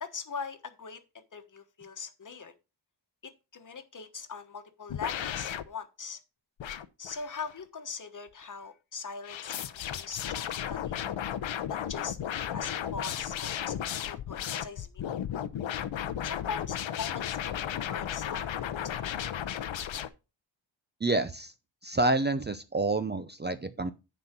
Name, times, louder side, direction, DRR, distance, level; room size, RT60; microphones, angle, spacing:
voice 1, 0.0-2.5 3.2-6.2 7.0-11.0 11.7-12.2 12.5-15.2 16.2-19.4, left 5 dB, 40° left, 1.2 m, -41 dB
sound 1, 4.9-5.6 6.6-7.6 9.2-20.1, left 10 dB, 90° left, 0.8 m, -34 dB
voice 2, 21.0-21.5 21.8-23.9, right 2 dB, 25° right, 0.5 m, -28 dB
10.0 x 4.3 x 5.9 m
wide cardioid pair, 155°, 45 cm